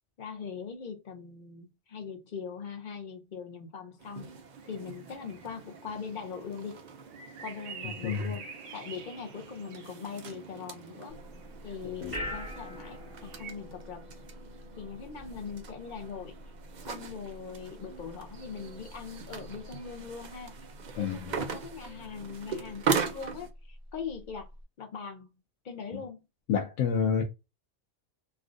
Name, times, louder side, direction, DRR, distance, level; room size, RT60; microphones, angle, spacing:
voice 1, 0.2-4.3 4.6-6.8 7.4-8.4 8.7-11.2 11.6-14.0 14.8-16.4 16.8-20.7 21.0-24.5 24.8-25.3 25.6-26.2, left 6 dB, 55° left, 0.6 m, -41 dB
sound 1, 4.0-23.5, right 5 dB, 60° right, 0.4 m, -40 dB
sound 2, 4.5-13.5, right 6 dB, 90° right, 1.0 m, -48 dB
sound 3, 11.1-24.6, left 1 dB, 20° right, 1.0 m, -46 dB
voice 2, 20.9-21.4 26.5-27.2, left 6 dB, 90° left, 0.9 m, -28 dB
3.2 x 2.4 x 2.4 m
omnidirectional pair, 1.3 m